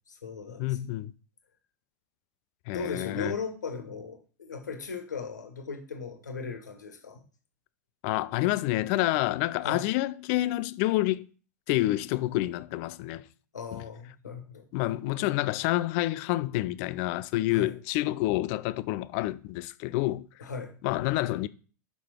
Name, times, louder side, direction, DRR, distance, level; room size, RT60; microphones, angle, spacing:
voice 1, 0.1-0.9 2.7-7.2 9.6-9.8 13.5-14.7 17.5-17.7 20.4-20.7, left 5 dB, 75° left, 1.5 m, -37 dB
voice 2, 0.6-1.1 2.7-3.3 8.0-11.3 11.7-13.3 13.7-13.8 14.7-20.3 20.8-21.5, left 17 dB, 45° left, 0.4 m, -28 dB
6.5 x 5.4 x 4.4 m
figure-of-eight pair, 85°, 10 cm